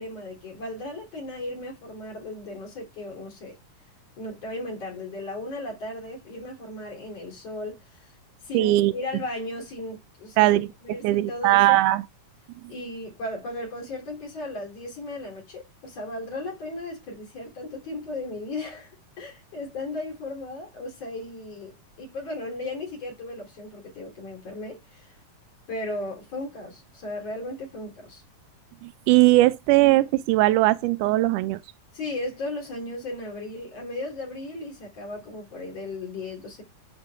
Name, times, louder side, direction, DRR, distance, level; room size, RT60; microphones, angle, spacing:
voice 1, 0.0-3.6 4.2-7.8 8.4-11.8 12.7-18.9 19.2-25.1 25.7-28.2 31.9-36.6, left 2 dB, 55° left, 4.2 m, -36 dB
voice 2, 8.5-8.9 10.4-10.7 11.0-12.0 28.8-31.6, right 17 dB, 90° right, 2.1 m, -19 dB
9.7 x 5.9 x 3.5 m
omnidirectional pair, 3.5 m